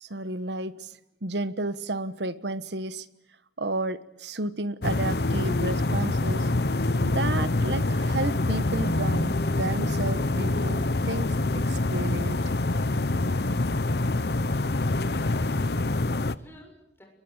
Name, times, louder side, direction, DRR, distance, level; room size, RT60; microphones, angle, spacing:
voice 1, 0.0-3.1 3.6-6.5 7.0-12.4, right 2 dB, 80° right, 15 dB, 1.4 m, -32 dB
sound 1, 4.8-16.4, left 2 dB, 65° left, 0.9 m, -25 dB
voice 2, 15.1-17.1, equal, 15° left, 2 dB, 7.2 m, -52 dB
29.5 x 22.5 x 8.2 m, 0.81 s
head